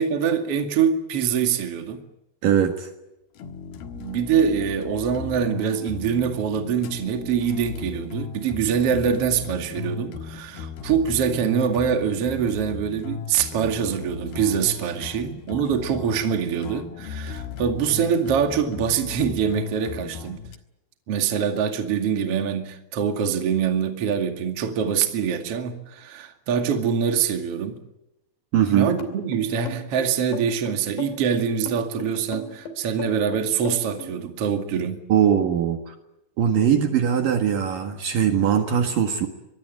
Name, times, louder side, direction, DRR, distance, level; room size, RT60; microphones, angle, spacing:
voice 1, 0.0-2.0 3.9-20.4 21.1-27.8 28.7-35.0, right 7 dB, 40° right, 2.7 m, -24 dB
voice 2, 2.4-2.9 28.5-28.9 35.1-35.9 36.4-39.3, right 9 dB, 60° right, 3.1 m, -21 dB
sound 1, 3.4-20.6, left 7 dB, 65° left, 3.2 m, -37 dB
sound 2, 29.0-34.1, left 3 dB, 85° left, 5.1 m, -36 dB
24.5 x 21.5 x 9.3 m
omnidirectional pair, 4.8 m